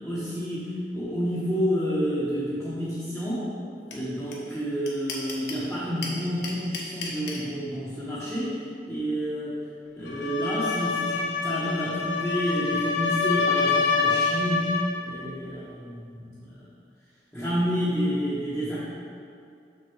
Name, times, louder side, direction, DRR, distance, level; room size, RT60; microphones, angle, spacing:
voice 1, 0.0-3.5 3.9-9.6 9.9-16.7 17.3-18.8, equal, 5° left, -11 dB, 1.2 m, -29 dB
sound 1, 3.9-4.0 4.3-4.4 4.6-5.6 6.0-7.4, left 4 dB, 60° left, 1.2 m, -34 dB
sound 2, 10.1-15.0, left 5 dB, 80° left, 0.8 m, -26 dB
6.4 x 4.2 x 6.3 m, 2.5 s
head